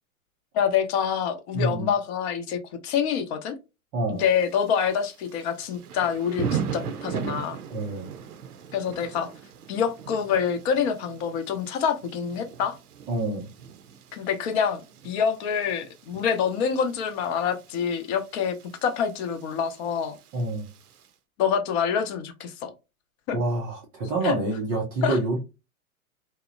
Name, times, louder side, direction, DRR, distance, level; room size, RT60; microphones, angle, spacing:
voice 1, 0.5-3.6 4.1-7.6 8.7-9.3 9.7-12.8 14.1-18.5 18.8-20.2 21.4-22.7 23.3-23.4 24.2-24.4 25.0-25.2, left 7 dB, 45° left, 0.7 m, -26 dB
voice 2, 1.5-1.9 3.9-4.2 7.7-8.1 13.1-13.5 20.3-20.7 23.3-25.4, right 2 dB, 20° right, 0.3 m, -27 dB
Thunder / Rain, 4.2-21.1, right 7 dB, 85° right, 0.6 m, -39 dB
2.8 x 2.0 x 2.3 m
hypercardioid pair, 115°, 44 cm